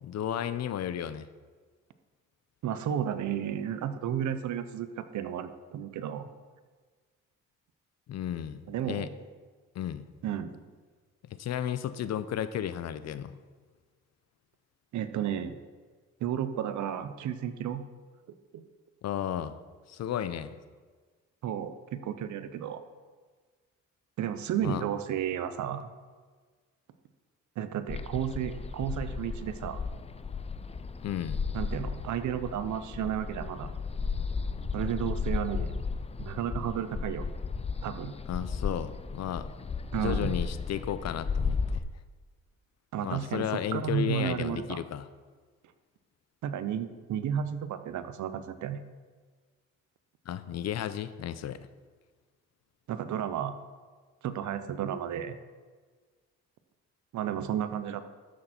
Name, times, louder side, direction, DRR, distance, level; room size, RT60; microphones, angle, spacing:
voice 1, 0.0-1.3 8.1-9.1 9.7-10.1 11.2-13.3 19.0-19.6 19.9-20.6 24.6-24.8 31.0-31.4 38.3-39.5 40.0-41.8 43.0-45.1 50.3-51.6, left 10 dB, 60° left, 13 dB, 0.7 m, -33 dB
voice 2, 2.6-6.3 8.7-9.1 10.2-10.6 14.9-15.6 16.2-17.8 18.5-18.6 21.4-22.8 24.2-25.9 27.6-29.8 31.5-33.7 34.7-35.7 36.2-37.3 37.8-38.1 39.9-40.3 42.9-43.5 43.7-44.8 46.4-48.8 52.9-53.6 54.2-55.4 57.1-58.0, right 9 dB, 70° right, 11 dB, 0.8 m, -32 dB
sound 1, 27.9-41.8, left 5 dB, 20° left, 0.5 m, -34 dB
12.5 x 6.4 x 4.4 m, 1.5 s
cardioid pair, 90°, 30 cm